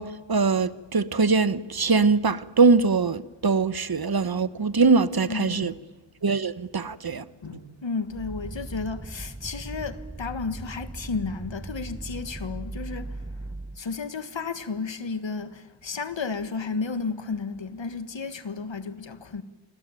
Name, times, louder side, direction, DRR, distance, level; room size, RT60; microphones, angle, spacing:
voice 1, 0.0-5.7 6.2-7.2 7.5-7.6, right 4 dB, 55° right, 1.1 m, -22 dB
voice 2, 5.2-5.8 7.4-13.1 13.8-19.4, left 4 dB, 85° left, 1.7 m, -33 dB
sound 1, 8.1-13.9, right 2 dB, 15° right, 0.8 m, -38 dB
27.5 x 20.5 x 9.1 m
wide cardioid pair, 60°, 44 cm